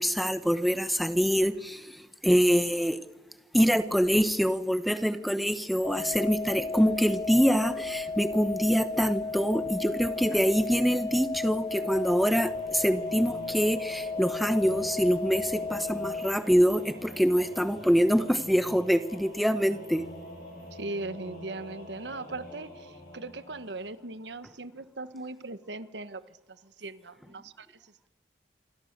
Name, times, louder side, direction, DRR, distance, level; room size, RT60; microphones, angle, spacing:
voice 1, 0.0-3.0 3.5-20.0, equal, ahead, 10 dB, 0.9 m, -25 dB
sound 1, 5.8-16.3, left 3 dB, 30° left, 0.8 m, -34 dB
Singing / Musical instrument, 11.8-24.3, equal, 50° left, 7.2 m, -46 dB
voice 2, 20.7-26.2 26.5-28.1, right 2 dB, 85° right, 13 dB, 1.3 m, -39 dB
28.0 x 25.0 x 6.7 m, 1.1 s
head